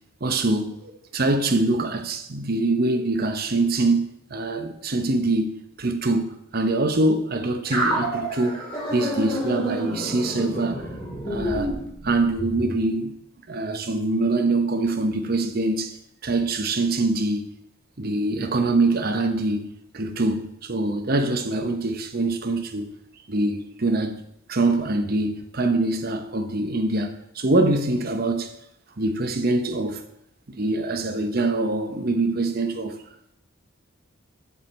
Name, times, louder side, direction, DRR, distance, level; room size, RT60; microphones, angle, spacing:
voice 1, 0.2-10.9 11.3-11.7 12.0-13.2 13.5-16.0 16.2-17.5 18.0-19.7 19.9-22.9 23.3-24.2 24.5-28.5 29.0-30.0 30.5-33.0, right 2 dB, 45° right, 0.8 m, -24 dB
sound 1, 7.7-12.6, equal, 25° left, 3.8 m, -29 dB
7.2 x 6.4 x 5.2 m
head